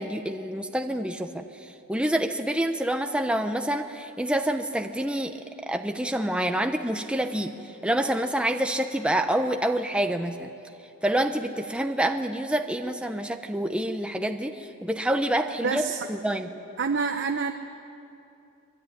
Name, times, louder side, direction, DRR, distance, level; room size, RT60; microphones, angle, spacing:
voice 1, 0.0-5.4 5.7-7.5 7.8-10.5 11.0-16.5, right 1 dB, 5° right, 5 dB, 0.9 m, -27 dB
voice 2, 15.6-16.1 16.8-17.5, right 5 dB, 55° right, 5 dB, 0.9 m, -27 dB
24.0 x 23.0 x 9.8 m, 2.7 s
head